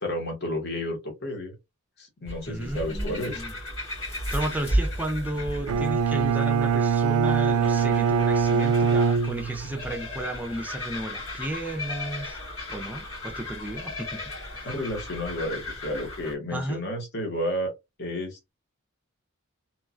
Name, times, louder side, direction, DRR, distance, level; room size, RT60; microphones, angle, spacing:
voice 1, 0.0-1.5 2.0-3.4 14.6-17.7 18.0-18.5, left 1 dB, 50° left, 0.9 m, -31 dB
sound 1, 2.3-16.3, equal, 75° left, 1.8 m, -35 dB
voice 2, 2.5-3.5 4.1-12.4 12.7-14.2 14.6-14.7 16.5-16.8, right 1 dB, 5° right, 0.4 m, -33 dB
Bowed string instrument, 5.7-9.9, right 6 dB, 90° right, 0.3 m, -23 dB
3.0 x 2.2 x 2.4 m
head